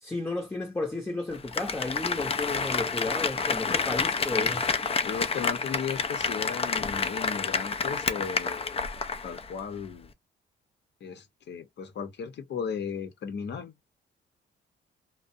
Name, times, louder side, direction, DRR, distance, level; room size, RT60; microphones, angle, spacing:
voice 1, 0.0-4.8, left 2 dB, 10° left, 0.8 m, -33 dB
Applause, 1.3-9.5 9.8-9.9, left 5 dB, 30° left, 0.5 m, -29 dB
voice 2, 5.0-8.8 9.2-10.1 11.0-13.7, left 6 dB, 60° left, 0.8 m, -36 dB
2.4 x 2.1 x 2.6 m
cardioid pair, 90°, 20 cm